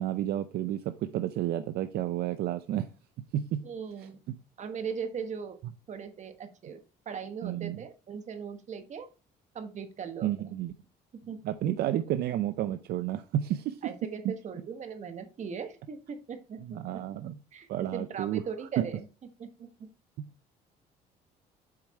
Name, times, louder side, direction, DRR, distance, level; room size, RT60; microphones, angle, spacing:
voice 1, 0.0-2.9 3.3-3.7 7.4-7.8 10.2-10.7 11.4-13.8 14.2-14.3 16.6-17.4 17.7-18.4 18.8-18.9, right 12 dB, 70° right, 11 dB, 0.5 m, -31 dB
voice 2, 3.6-5.6 5.9-9.1 9.5-10.5 11.3-11.4 11.7-11.8 13.8-17.0 17.5-19.1 19.4-19.9, right 6 dB, 45° right, 9 dB, 1.3 m, -39 dB
7.4 x 4.7 x 4.3 m, 0.33 s
cardioid pair, 110°, 17 cm